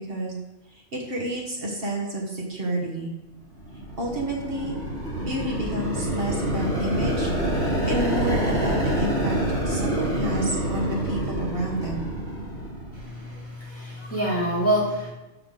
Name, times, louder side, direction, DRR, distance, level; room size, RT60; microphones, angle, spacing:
voice 1, 0.7-3.1 4.0-4.8 5.2-9.4 9.6-12.1, right 1 dB, 55° right, -2 dB, 1.6 m, -30 dB
sound 1, 3.5-13.3, right 1 dB, 80° right, 2.2 m, -27 dB
voice 2, 12.9-15.1, equal, 10° left, -7 dB, 2.2 m, -26 dB
5.7 x 5.7 x 6.5 m, 1.0 s
omnidirectional pair, 1.1 m